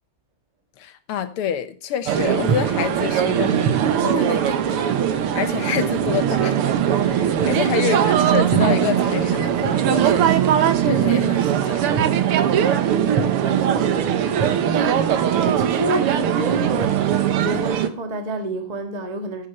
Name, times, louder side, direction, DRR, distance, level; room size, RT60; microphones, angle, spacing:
voice 1, 0.8-10.5 10.7-11.9, left 9 dB, 80° left, 1.9 m, -28 dB
sound 1, 2.1-17.9, right 9 dB, 85° right, 1.9 m, -20 dB
voice 2, 7.3-7.7 13.0-19.5, right 2 dB, 20° right, 1.4 m, -29 dB
15.0 x 8.2 x 4.3 m
omnidirectional pair, 2.4 m